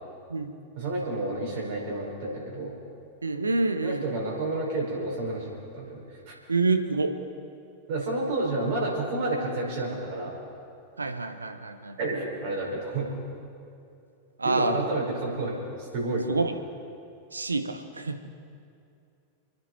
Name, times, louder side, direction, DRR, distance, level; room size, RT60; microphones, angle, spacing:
voice 1, 0.8-2.8 3.8-6.4 7.9-10.3 12.0-13.1 14.4-16.3, right 2 dB, 50° right, -3 dB, 5.0 m, -30 dB
voice 2, 3.2-4.0 6.5-7.1 11.0-12.0 14.4-14.8 16.3-16.5 17.3-18.3, right 3 dB, 80° right, 7 dB, 1.1 m, -27 dB
29.5 x 10.0 x 4.6 m, 2.5 s
figure-of-eight pair, 90°, 0 cm